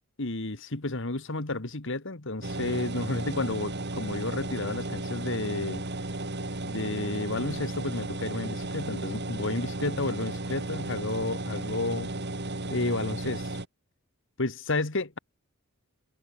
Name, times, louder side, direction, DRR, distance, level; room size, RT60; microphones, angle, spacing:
voice 1, 0.2-5.8 6.6-12.1 12.7-13.5 14.4-15.2, left 2 dB, 60° left, 1.7 m, -31 dB
sound 1, 2.4-13.7, right 2 dB, 50° right, 2.5 m, -34 dB
head